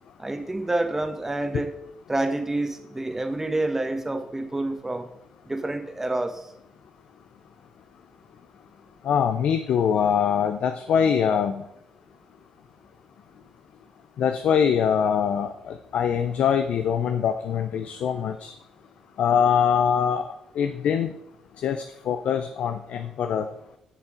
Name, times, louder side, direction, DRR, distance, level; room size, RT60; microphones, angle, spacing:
voice 1, 0.2-1.7 2.1-5.1 5.5-6.5, right 2 dB, 20° right, 8 dB, 1.2 m, -28 dB
voice 2, 9.0-11.6 14.2-18.5 19.2-20.2 20.6-21.1 21.6-23.5, left 7 dB, 75° left, 8 dB, 0.5 m, -23 dB
7.4 x 7.1 x 5.0 m, 0.79 s
supercardioid pair, 65°, 2 cm